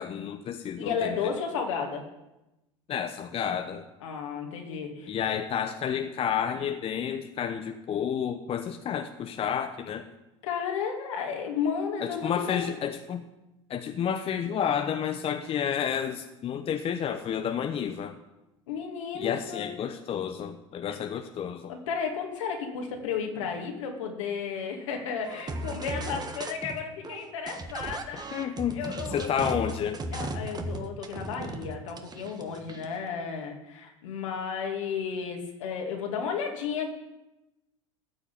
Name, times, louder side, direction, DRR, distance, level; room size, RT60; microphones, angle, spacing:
voice 1, 0.0-1.2 2.9-3.9 5.1-10.1 12.0-13.3 13.7-18.2 19.1-21.7 28.3-28.8 29.1-30.0, left 8 dB, 35° left, 7 dB, 1.0 m, -30 dB
voice 2, 0.8-2.0 4.0-5.2 10.4-12.7 18.7-19.7 20.9-21.0 21.7-29.3 30.1-36.9, left 6 dB, 75° left, 2 dB, 2.6 m, -33 dB
sound 1, 25.2-26.8 27.0-33.0, right 2 dB, 25° right, 1.5 m, -36 dB
14.0 x 6.3 x 8.8 m, 0.98 s
hypercardioid pair, 80°, 16 cm